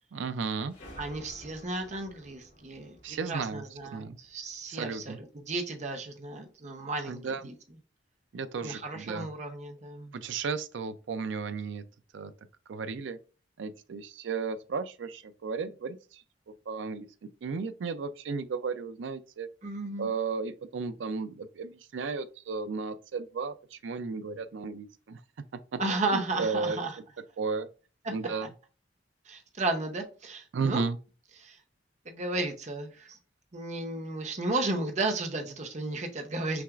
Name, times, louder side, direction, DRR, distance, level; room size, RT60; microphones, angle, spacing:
voice 1, 0.1-0.7 3.0-3.6 3.9-4.2 4.7-5.2 7.1-7.4 8.3-9.3 10.1-11.8 12.1-12.3 12.7-13.2 13.6-16.2 16.7-17.1 17.4-19.5 20.0-25.2 25.7-25.8 26.1-26.8 27.4-27.7 28.1-28.5 30.5-31.0, right 5 dB, 85° right, 0.4 m, -34 dB
sound 1, 0.7-5.1, equal, 70° left, 2.1 m, -52 dB
voice 2, 1.0-7.5 8.6-10.1 19.6-20.1 25.8-26.9 28.0-28.1 29.3-30.8 31.4-31.6 32.1-33.2 33.5-36.6, right 2 dB, 40° right, 0.7 m, -34 dB
5.8 x 2.4 x 2.4 m
head